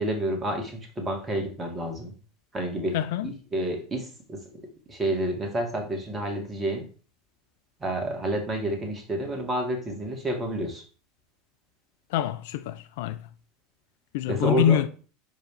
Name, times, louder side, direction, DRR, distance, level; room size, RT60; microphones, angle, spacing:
voice 1, 0.0-2.1 2.5-3.0 3.2-4.4 4.9-6.9 7.8-10.8 14.3-14.8, right 1 dB, 20° right, 1.9 m, -29 dB
voice 2, 2.9-3.3 12.1-13.2 14.1-14.9, left 11 dB, 55° left, 0.4 m, -25 dB
6.6 x 5.2 x 3.2 m
figure-of-eight pair, 80°, 0 cm